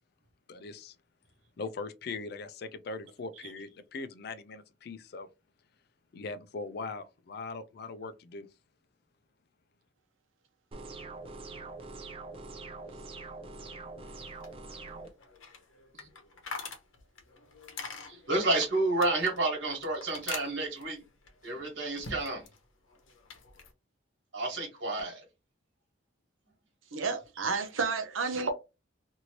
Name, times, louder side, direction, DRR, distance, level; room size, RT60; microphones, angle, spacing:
voice 1, 0.5-1.0 1.6-5.3 6.1-8.5, left 3 dB, 50° left, 0.4 m, -40 dB
sound 1, 10.7-15.1, right 3 dB, 30° right, 0.4 m, -44 dB
sound 2, 14.1-22.6 22.9-23.7, left 4 dB, 85° left, 0.9 m, -45 dB
voice 2, 18.0-21.0 21.4-22.5 24.3-25.2, right 2 dB, 70° right, 1.4 m, -30 dB
voice 3, 26.9-28.5, right 4 dB, 90° right, 0.8 m, -31 dB
3.0 x 2.6 x 2.8 m
head